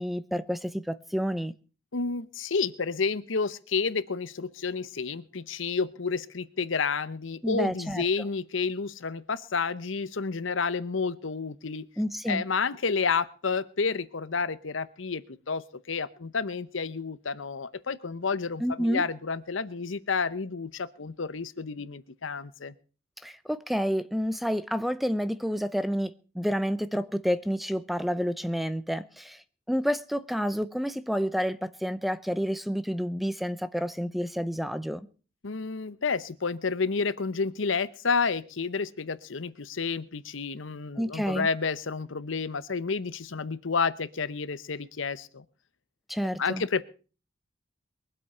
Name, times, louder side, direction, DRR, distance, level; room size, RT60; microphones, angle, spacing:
voice 1, 0.0-1.5 7.4-8.0 12.0-12.4 18.6-19.1 23.2-35.0 41.0-41.5 46.1-46.6, equal, ahead, 0.6 m, -29 dB
voice 2, 1.9-11.9 12.3-22.7 35.4-45.4 46.4-46.8, left 5 dB, 70° left, 0.8 m, -30 dB
22.5 x 8.0 x 5.5 m
head